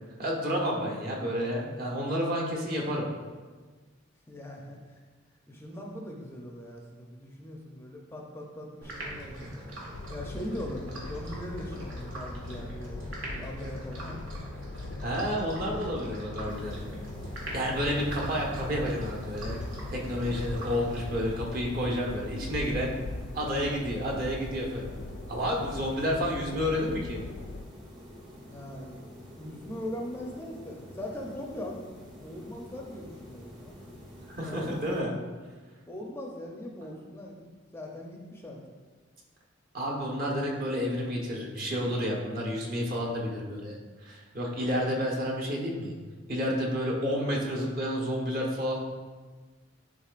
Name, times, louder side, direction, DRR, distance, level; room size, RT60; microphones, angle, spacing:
voice 1, 0.2-3.1 15.0-16.8 17.5-19.5 19.9-22.9 23.3-24.9 25.3-27.2 34.3-35.2 39.7-45.9 46.3-48.8, equal, 50° right, -2 dB, 1.2 m, -30 dB
voice 2, 4.3-5.0 5.5-9.5 10.1-14.2 28.5-29.0 29.4-33.8 34.4-35.3 35.9-38.6, left 1 dB, 15° left, -1 dB, 0.6 m, -40 dB
sound 1, 8.8-21.5, right 1 dB, 75° right, 1.5 m, -42 dB
sound 2, 9.9-27.6, left 2 dB, 75° left, 0.4 m, -41 dB
sound 3, 16.5-35.0, equal, 25° right, 0.9 m, -48 dB
10.0 x 3.9 x 2.5 m, 1.4 s
head